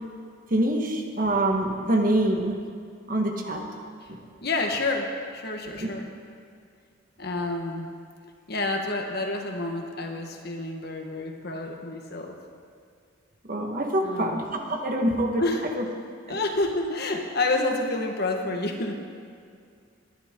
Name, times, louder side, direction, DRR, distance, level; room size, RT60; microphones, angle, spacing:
voice 1, 0.5-2.6 3.1-3.6 4.1-4.2 5.8-5.9 13.5-15.4 15.8-15.9 16.3-16.4, right 1 dB, 45° right, 2 dB, 1.5 m, -25 dB
voice 2, 4.4-6.1 7.2-7.9 8.5-12.4 14.0-14.4 15.4-15.8 16.3-19.0, left 2 dB, 55° left, 3 dB, 1.4 m, -29 dB
21.0 x 11.5 x 3.8 m, 2.3 s
head